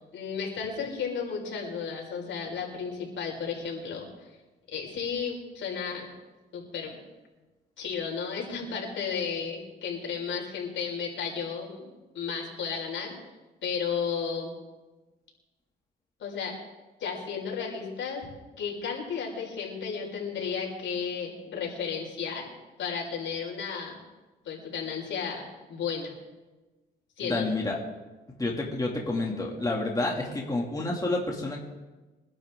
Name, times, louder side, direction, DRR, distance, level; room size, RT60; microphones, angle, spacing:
voice 1, 0.1-4.3 4.7-6.1 6.5-7.0 7.8-11.9 12.1-13.1 13.6-14.5 16.2-16.6 17.0-18.3 18.6-22.5 22.8-24.0 24.4-25.4 25.7-26.1 27.2-27.5, left 6 dB, 70° left, -1 dB, 5.4 m, -33 dB
voice 2, 27.2-27.8 28.4-31.6, left 2 dB, 20° left, -2 dB, 2.8 m, -29 dB
24.5 x 11.5 x 3.9 m, 1.2 s
cardioid pair, 90°, 20 cm